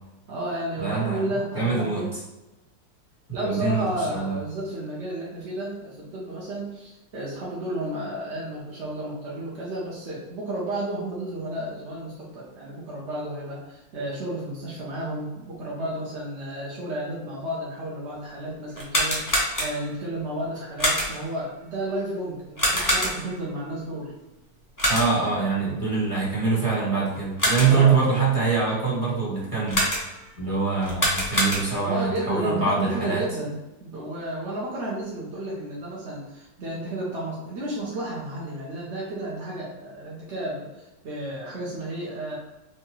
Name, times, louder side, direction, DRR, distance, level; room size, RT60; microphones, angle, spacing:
voice 1, 0.3-2.1 3.3-24.1 27.6-28.0 31.8-33.5 33.8-42.4, right 1 dB, 55° right, -5 dB, 0.8 m, -32 dB
voice 2, 0.8-1.2 1.5-2.0 3.4-4.3 24.9-29.8 30.4-33.2, right 4 dB, 20° right, -8 dB, 1.2 m, -24 dB
sound 1, 18.7-20.0 20.8-21.3 22.6-23.4 24.8-25.3 27.1-27.9 29.7-30.3 30.8-32.0, equal, 20° left, 0.5 m, -25 dB
4.5 x 2.5 x 3.0 m, 1.0 s
omnidirectional pair, 2.0 m